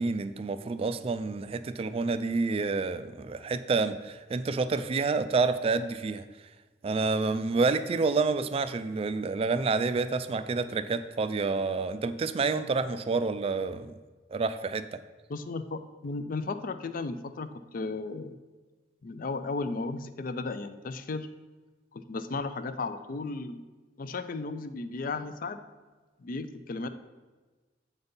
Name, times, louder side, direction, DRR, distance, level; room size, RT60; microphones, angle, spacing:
voice 1, 0.0-6.2 6.8-13.9 14.3-15.0, right 4 dB, 30° right, 12 dB, 0.3 m, -28 dB
voice 2, 15.3-18.4 19.0-21.3 21.9-23.6 24.0-25.6 26.2-26.9, left 3 dB, 50° left, 11 dB, 0.4 m, -35 dB
7.9 x 4.1 x 5.2 m, 1.3 s
head